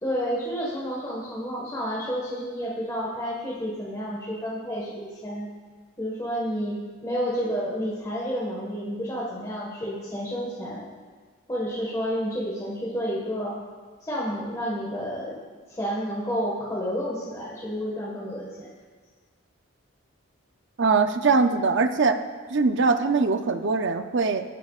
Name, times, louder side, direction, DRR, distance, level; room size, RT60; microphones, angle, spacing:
voice 1, 0.0-5.5 6.0-10.8 11.5-13.6 14.1-15.4 15.7-18.7, equal, 15° left, -6 dB, 1.6 m, -30 dB
voice 2, 20.8-22.2 22.5-24.4, right 4 dB, 55° right, 8 dB, 0.6 m, -22 dB
18.0 x 8.0 x 2.4 m, 1.4 s
head